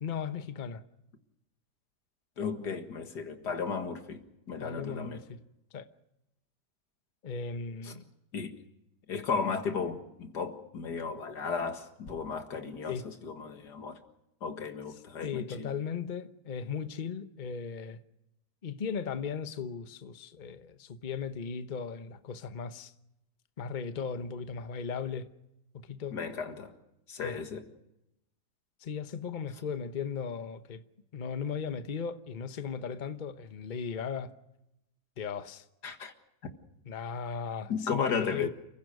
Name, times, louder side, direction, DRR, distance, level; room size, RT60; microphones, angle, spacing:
voice 1, 0.0-0.8 4.6-5.4 5.7-5.9 7.2-8.0 12.9-13.1 15.2-18.0 18.6-22.9 23.6-25.3 25.9-26.2 27.2-27.4 28.8-30.8 31.1-34.3 35.2-35.6 36.9-38.5, left 6 dB, 35° left, 1.0 m, -37 dB
voice 2, 2.4-4.2 4.5-5.2 7.8-7.9 8.3-8.5 9.1-14.0 14.4-15.7 26.1-26.7 27.1-27.6 35.8-36.1 37.7-38.5, left 5 dB, 85° left, 2.4 m, -34 dB
29.0 x 15.5 x 6.5 m
omnidirectional pair, 1.7 m